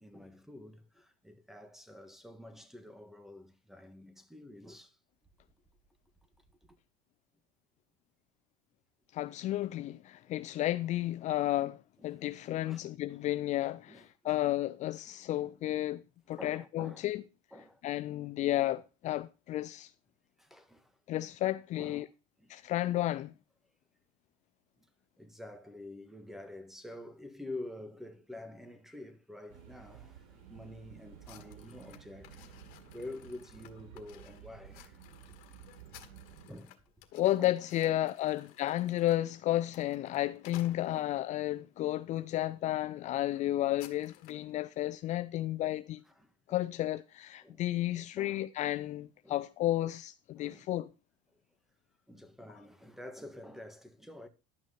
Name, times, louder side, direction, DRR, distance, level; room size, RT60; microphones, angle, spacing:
voice 1, 0.0-5.0 12.0-12.1 12.6-12.9 13.9-14.4 16.4-17.8 20.4-21.0 21.8-22.1 22.4-22.6 24.8-24.9 25.2-32.7 32.9-35.0 35.3-35.4 36.3-36.8 37.4-37.5 46.2-46.7 47.4-47.6 47.9-48.5 49.2-49.4 49.8-49.9 50.4-50.7 52.1-54.3, left 1 dB, ahead, 1.6 m, -48 dB
voice 2, 9.1-11.8 12.0-16.0 16.3-17.2 17.8-19.9 21.1-22.0 22.5-23.3 37.1-46.0 46.5-50.9, left 14 dB, 45° left, 0.6 m, -32 dB
sound 1, 29.5-36.5, right 9 dB, 85° right, 5.3 m, -54 dB
sound 2, 31.2-41.4 42.0-42.2 42.6-42.7 43.0-44.5, left 14 dB, 65° left, 1.8 m, -57 dB
11.5 x 6.2 x 5.6 m
supercardioid pair, 115°, 17 cm